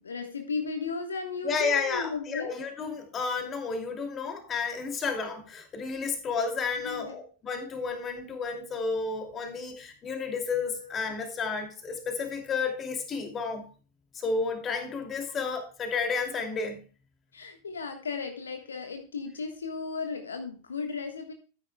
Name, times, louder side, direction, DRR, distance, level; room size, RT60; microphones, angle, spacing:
voice 1, 0.0-2.5 6.8-7.2 10.8-11.0 17.3-21.3, left 4 dB, 70° left, 1.4 m, -35 dB
voice 2, 1.4-13.7 14.1-16.8, left 4 dB, 25° left, 2.6 m, -31 dB
13.0 x 9.8 x 2.3 m
figure-of-eight pair, 90°, 0 cm